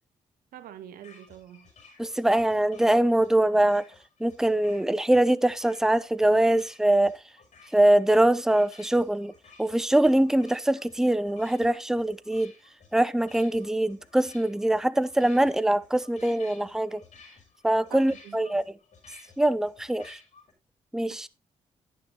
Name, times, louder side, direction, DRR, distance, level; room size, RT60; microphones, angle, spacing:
voice 1, 0.5-1.7 17.9-18.5 21.1-21.3, right 10 dB, 80° right, 1.4 m, -45 dB
sound 1, 1.0-20.5, left 4 dB, 55° left, 6.3 m, -55 dB
voice 2, 2.0-3.8 4.2-7.2 7.7-9.3 9.6-12.5 12.9-17.0 17.6-18.6 19.4-20.2 20.9-21.3, right 1 dB, 5° right, 0.8 m, -23 dB
11.5 x 11.0 x 3.0 m
supercardioid pair, 50°, 15 cm